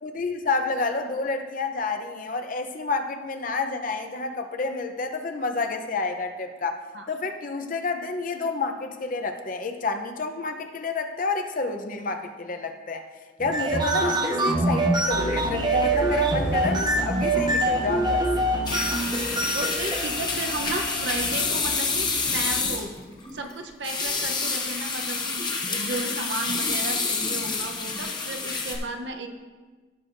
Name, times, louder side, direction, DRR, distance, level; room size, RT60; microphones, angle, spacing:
voice 1, 0.0-6.8 7.1-13.0 13.4-18.3, left 3 dB, 50° left, 6 dB, 0.7 m, -29 dB
sound 1, 13.4-21.7, right 2 dB, 25° right, 0.6 m, -25 dB
sound 2, 15.1-22.8, left 1 dB, 85° left, 2.6 m, -35 dB
sound 3, 18.7-28.8, left 4 dB, 25° left, 1.1 m, -28 dB
voice 2, 19.5-22.9 23.3-29.3, right 2 dB, 65° right, 5 dB, 0.8 m, -34 dB
16.0 x 6.2 x 2.6 m, 1.4 s
head